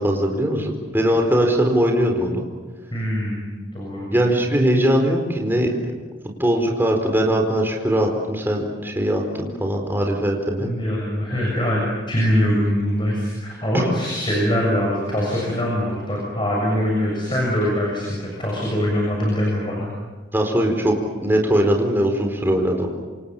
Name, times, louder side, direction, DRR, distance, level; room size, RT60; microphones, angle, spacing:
voice 1, 0.0-2.5 4.1-5.7 6.4-10.7 20.3-22.9, equal, 10° right, 2 dB, 4.4 m, -20 dB
voice 2, 2.9-4.2 10.6-19.9, equal, 25° left, -2 dB, 7.2 m, -23 dB
27.5 x 27.5 x 7.3 m, 1.3 s
head